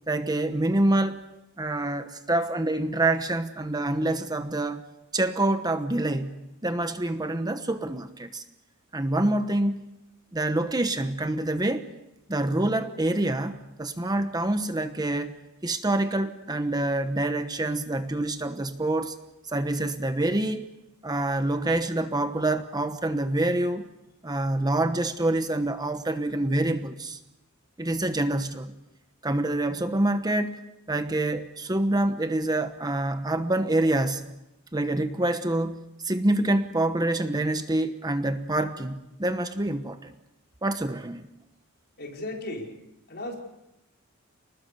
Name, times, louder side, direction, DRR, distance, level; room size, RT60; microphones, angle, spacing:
voice 1, 0.1-1.2 1.6-4.8 5.1-8.4 8.9-9.8 10.3-11.9 12.3-15.3 15.6-19.1 19.4-20.7 21.0-23.8 24.2-27.2 27.8-28.7 29.2-30.6 30.9-34.3 34.7-40.1 40.6-41.3, right 1 dB, 20° right, 9 dB, 1.0 m, -26 dB
voice 2, 42.0-42.8 43.1-43.4, left 1 dB, 50° left, 1 dB, 5.0 m, -35 dB
30.0 x 20.0 x 6.8 m, 0.91 s
head